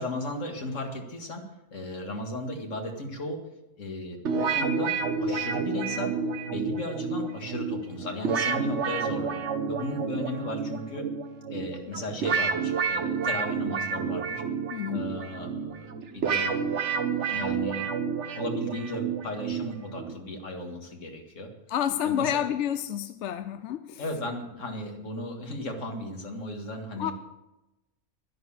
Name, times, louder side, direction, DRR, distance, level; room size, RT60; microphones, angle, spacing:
voice 1, 0.0-3.4 3.8-4.9 5.2-6.2 6.5-9.4 9.7-11.1 11.5-14.4 14.9-16.6 17.3-17.9 18.3-21.5 22.0-22.4 24.0-27.1, left 1 dB, 90° left, 3 dB, 2.3 m, -35 dB
sound 1, 4.2-20.2, right 5 dB, 70° right, 1.3 m, -30 dB
voice 2, 14.7-15.1 21.7-24.0 27.0-27.1, left 10 dB, 75° left, 11 dB, 0.9 m, -29 dB
12.0 x 10.5 x 7.3 m, 1.0 s
omnidirectional pair, 1.3 m